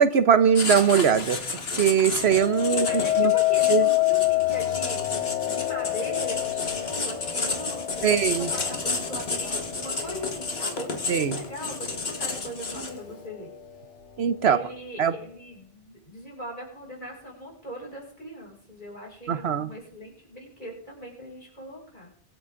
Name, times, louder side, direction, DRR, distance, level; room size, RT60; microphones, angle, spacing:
voice 1, 0.0-1.4 1.8-2.9 3.2-3.3 3.7-3.9 8.0-8.5 11.1-11.4 14.2-14.6 15.0-15.1 19.3-19.7, right 7 dB, 65° right, 13 dB, 1.0 m, -21 dB
Writing, 0.5-13.1, left 3 dB, 60° left, 2.0 m, -32 dB
sound 1, 2.2-11.4 11.9-12.4, left 17 dB, 85° left, 1.2 m, -27 dB
voice 2, 2.7-13.5 14.4-22.1, equal, 45° left, -3 dB, 6.4 m, -40 dB
23.5 x 8.8 x 3.7 m, 0.63 s
omnidirectional pair, 1.2 m